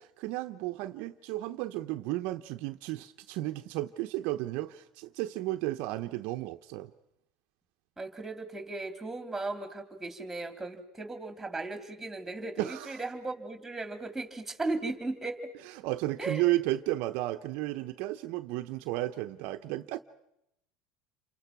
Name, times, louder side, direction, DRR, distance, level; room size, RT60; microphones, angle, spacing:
voice 1, 0.0-6.9 12.6-12.9 15.8-20.0, right 16 dB, 65° right, 0.9 m, -33 dB
voice 2, 8.0-15.5 16.2-16.4, right 2 dB, 10° right, 3.3 m, -36 dB
28.5 x 25.5 x 6.1 m
supercardioid pair, 125°, 3 cm